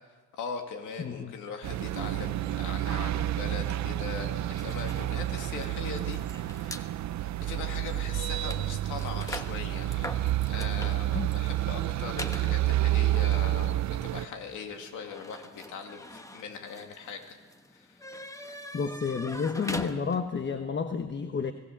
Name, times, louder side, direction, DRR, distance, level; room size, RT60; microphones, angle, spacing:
voice 1, 0.3-6.9 7.2-17.4 17.7-18.1, left 5 dB, 85° left, 4 dB, 2.5 m, -40 dB
voice 2, 1.0-1.3 11.1-11.3 18.7-21.5, left 5 dB, 35° left, 8 dB, 1.2 m, -31 dB
sound 1, 1.6-14.3, right 14 dB, 65° right, 0.7 m, -29 dB
sound 2, 4.5-6.9 7.6-7.7 8.0-20.5, left 1 dB, 10° left, 1.4 m, -43 dB
24.5 x 17.5 x 7.4 m, 1.3 s
cardioid pair, 90°, 30 cm